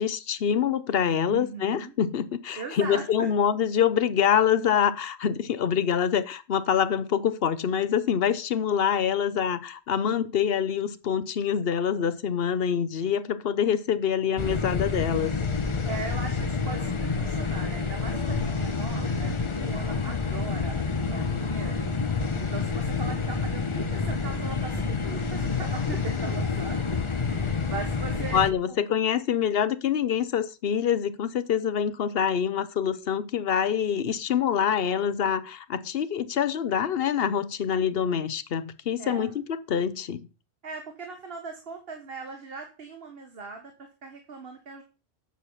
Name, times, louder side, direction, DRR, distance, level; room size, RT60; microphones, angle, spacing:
voice 1, 0.0-15.3 28.3-40.3, left 8 dB, 70° left, 1.0 m, -25 dB
voice 2, 1.3-1.9 2.5-3.3 15.8-21.9 22.4-28.4 39.0-39.4 40.6-44.8, right 4 dB, 65° right, 1.5 m, -39 dB
sound 1, 14.4-28.5, left 4 dB, 30° left, 0.9 m, -28 dB
9.4 x 6.9 x 5.5 m
omnidirectional pair, 1.1 m